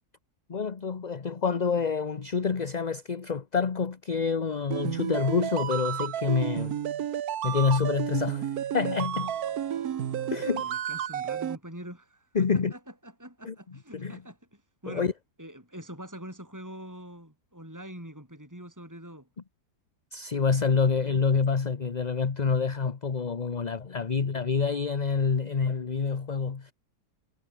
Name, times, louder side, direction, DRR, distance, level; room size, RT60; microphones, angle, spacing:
voice 1, 0.5-6.8 7.4-9.3 10.3-10.7 12.3-12.7 13.4-13.5 13.9-14.2 14.9-15.1 20.1-26.7, left 5 dB, 30° left, 0.9 m, -27 dB
sound 1, 4.7-11.6, right 10 dB, 65° right, 1.4 m, -31 dB
voice 2, 9.1-15.1 15.4-19.3, right 1 dB, 10° right, 6.1 m, -45 dB
omnidirectional pair, 1.8 m